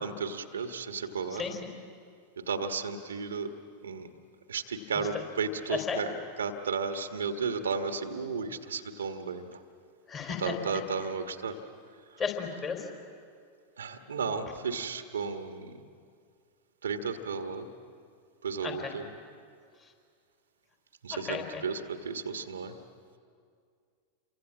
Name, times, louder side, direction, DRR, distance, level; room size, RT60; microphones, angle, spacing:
voice 1, 0.0-1.4 2.5-3.5 3.8-4.1 4.5-6.1 6.4-9.4 10.4-11.5 13.8-15.7 16.8-17.7 18.4-19.1 21.0-22.7, right 5 dB, 70° right, 7 dB, 1.5 m, -33 dB
voice 2, 1.3-1.7 5.1-5.2 5.7-6.0 10.1-10.8 12.2-12.8 18.6-18.9 21.1-21.6, left 6 dB, 25° left, 3 dB, 4.1 m, -34 dB
28.5 x 24.5 x 7.5 m, 2.2 s
figure-of-eight pair, 90°, 0 cm